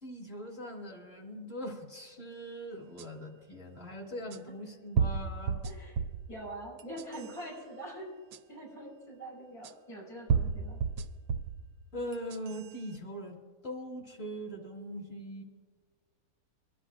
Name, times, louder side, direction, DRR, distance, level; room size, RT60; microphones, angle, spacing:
voice 1, 0.0-5.6 11.9-13.4 13.6-15.4, equal, 40° left, -1 dB, 1.7 m, -41 dB
sound 1, 3.0-3.1 4.3-4.4 5.0-6.3 6.8-7.4 8.3-8.4 9.6-9.7 10.3-11.6 12.1-12.7, right 6 dB, 90° right, 1.2 m, -31 dB
voice 2, 5.6-6.0 6.3-8.1 8.5-10.8, right 1 dB, 70° left, -6 dB, 5.5 m, -44 dB
24.0 x 11.5 x 2.4 m, 1.5 s
omnidirectional pair, 1.7 m